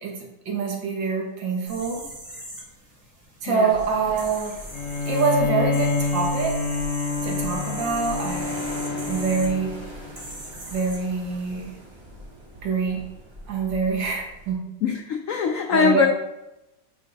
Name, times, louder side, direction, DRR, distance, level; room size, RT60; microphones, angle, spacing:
voice 1, 0.0-2.1 3.4-4.6 5.1-6.6 7.2-8.6 9.1-9.8 10.7-11.8 12.6-13.1 13.5-14.7 15.7-16.1, right 4 dB, 75° right, 0 dB, 2.0 m, -25 dB
sound 1, 1.7-11.7, right 1 dB, 40° right, 2.6 m, -41 dB
sound 2, 3.7-14.5, right 1 dB, 20° right, 0.7 m, -41 dB
Bowed string instrument, 4.7-10.2, left 3 dB, 55° left, 0.9 m, -27 dB
voice 2, 14.8-16.1, left 6 dB, 80° left, 4 dB, 0.7 m, -22 dB
9.1 x 3.4 x 3.9 m, 0.91 s
omnidirectional pair, 2.0 m